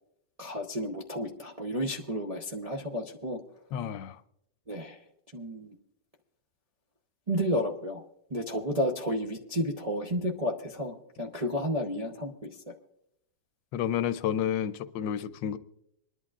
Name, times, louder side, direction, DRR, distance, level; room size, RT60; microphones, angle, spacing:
voice 1, 0.4-3.4 4.7-5.0 5.3-5.7 7.3-8.0 8.3-12.3, equal, 40° right, -2 dB, 0.5 m, -31 dB
voice 2, 3.7-4.2 13.7-15.6, left 9 dB, 80° left, 12 dB, 1.3 m, -30 dB
27.0 x 11.0 x 2.4 m, 0.79 s
omnidirectional pair, 2.0 m